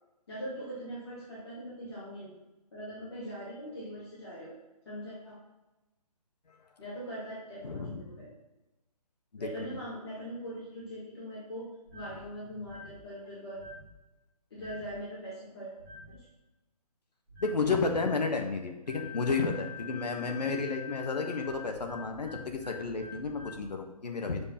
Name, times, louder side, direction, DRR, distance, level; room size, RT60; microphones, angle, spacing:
voice 1, 0.3-2.4 2.7-4.6 4.8-5.4 6.8-8.3 9.4-11.7 11.9-13.6 14.5-15.7 16.1-16.3, equal, 40° left, -9 dB, 2.5 m, -41 dB
voice 2, 7.6-8.0 9.3-9.5 17.4-24.4, left 4 dB, 85° left, 3 dB, 1.4 m, -32 dB
sound 1, 11.9-12.2 12.6-13.0 13.5-13.9 14.6-14.9 15.8-16.1 17.3-17.6 18.9-23.6, left 6 dB, ahead, 0.6 m, -46 dB
6.8 x 5.1 x 5.7 m, 1.0 s
hypercardioid pair, 180°, 20 cm